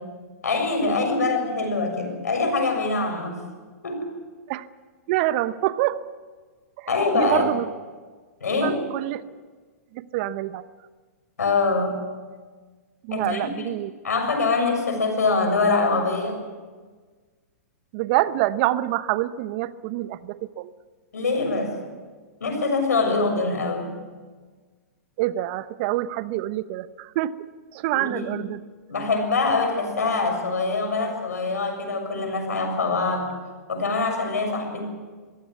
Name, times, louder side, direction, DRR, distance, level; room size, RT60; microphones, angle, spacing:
voice 1, 0.4-3.4 3.8-4.1 6.9-7.5 8.4-8.8 11.4-12.0 13.1-13.5 14.0-16.4 21.1-21.8 22.4-24.0 27.9-28.4 28.9-33.3 33.7-34.8, left 3 dB, 85° left, 4 dB, 6.9 m, -24 dB
voice 2, 5.1-6.0 6.8-7.7 8.6-9.2 9.9-10.7 13.0-13.9 17.9-20.7 25.2-27.4 27.7-28.6, right 15 dB, 45° right, 14 dB, 1.0 m, -26 dB
23.0 x 16.0 x 9.5 m, 1.4 s
hypercardioid pair, 120°, 8 cm